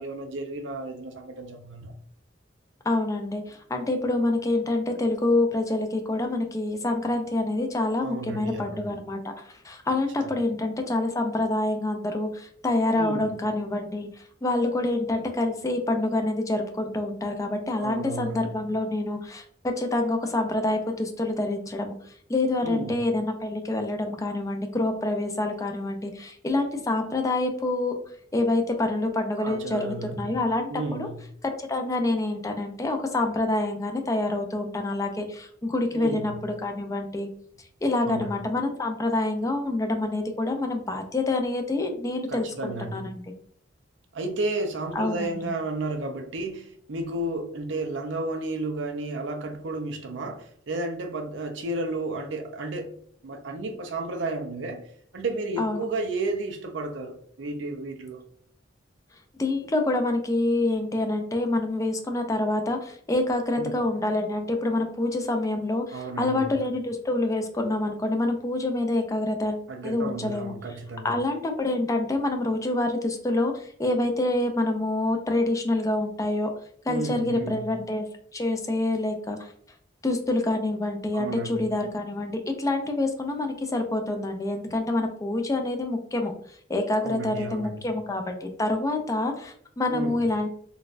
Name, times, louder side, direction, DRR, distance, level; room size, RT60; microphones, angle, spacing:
voice 1, 0.0-1.9 8.0-8.9 12.9-13.3 17.8-18.6 22.6-23.0 29.4-30.3 30.7-31.1 35.9-36.3 38.0-38.4 42.3-43.0 44.1-52.9 53.2-54.8 55.1-58.2 63.6-63.7 65.9-66.6 69.7-71.1 76.9-77.7 81.1-81.7 87.0-87.8 89.9-90.2, right 2 dB, 75° right, 0.5 m, -32 dB
voice 2, 2.9-28.0 28.3-31.1 31.6-37.3 37.8-43.2 44.9-45.5 55.6-55.8 59.4-70.5 71.0-76.5 76.8-78.1 78.3-79.5 80.0-86.3 86.7-90.5, left 2 dB, 20° left, 0.4 m, -27 dB
3.9 x 2.2 x 2.4 m
head